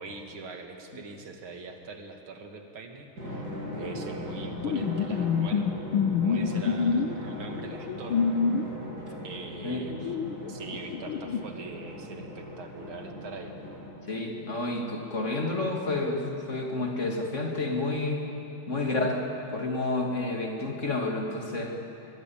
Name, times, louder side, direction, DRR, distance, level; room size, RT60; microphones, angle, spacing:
voice 1, 0.0-5.7 6.2-8.6 9.2-10.2 10.5-13.6, right 3 dB, 75° right, 4 dB, 2.8 m, -43 dB
Drum, 3.2-14.2, left 1 dB, 45° right, 8.0 m, -39 dB
sound 1, 4.6-7.2 7.7-8.7 9.9-11.4, left 6 dB, 80° left, 1.8 m, -27 dB
voice 2, 14.1-16.2 16.5-18.2 18.7-19.2 19.5-21.7, left 2 dB, 35° left, 1 dB, 2.9 m, -30 dB
23.0 x 22.0 x 8.8 m, 2.9 s
omnidirectional pair, 2.3 m